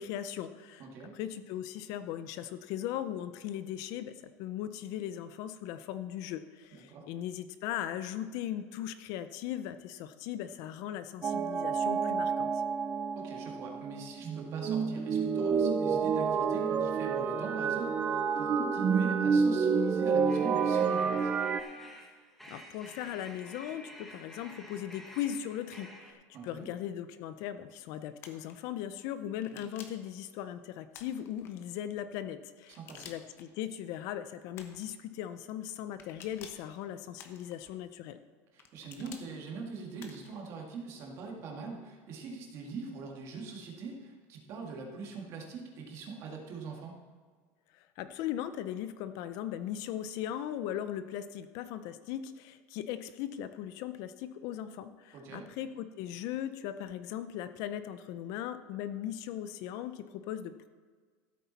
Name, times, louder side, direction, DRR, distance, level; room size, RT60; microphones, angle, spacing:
voice 1, 0.0-0.9 1.1-12.6 22.5-38.2 47.7-60.7, left 11 dB, 50° left, 12 dB, 0.5 m, -38 dB
voice 2, 0.8-1.1 6.7-7.1 13.1-21.3 26.3-26.7 29.5-29.6 32.7-33.1 38.5-46.9 55.1-55.5, right 4 dB, 35° right, 0 dB, 1.9 m, -42 dB
sound 1, 11.2-21.6, right 6 dB, 20° right, 0.4 m, -29 dB
sound 2, 20.3-26.1, equal, 5° left, 1.2 m, -50 dB
sound 3, 28.2-28.5 29.4-30.1 30.9-31.5 32.7-33.4 34.5-34.9 36.0-36.7 37.2-37.7 38.6-39.3 40.0-40.4, left 7 dB, 30° left, 0.9 m, -51 dB
14.0 x 8.4 x 4.1 m, 1.5 s
cardioid pair, 175°, 8 cm